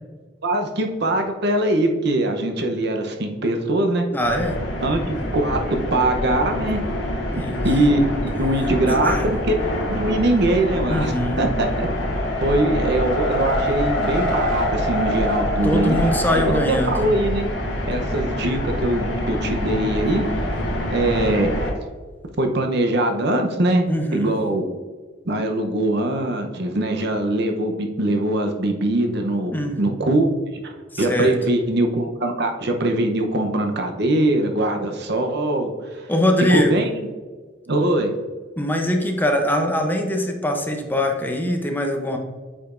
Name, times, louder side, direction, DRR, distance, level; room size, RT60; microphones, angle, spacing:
voice 1, 0.4-4.0 4.8-6.8 7.6-9.6 9.9-11.9 12.4-16.0 16.5-17.5 17.9-20.3 20.9-21.5 22.4-23.9 24.1-24.6 25.3-30.3 30.6-36.1 36.5-37.1 37.7-38.1, right 1 dB, 60° right, 4 dB, 0.8 m, -22 dB
voice 2, 4.1-4.6 7.3-7.6 8.9-9.2 10.9-11.4 15.6-17.0 23.9-24.4 29.5-30.0 30.9-31.3 36.1-36.7 38.6-42.2, left 1 dB, 10° left, 3 dB, 0.7 m, -22 dB
sound 1, 4.2-21.7, equal, 75° left, 1.5 m, -25 dB
8.3 x 5.1 x 2.5 m, 1.4 s
head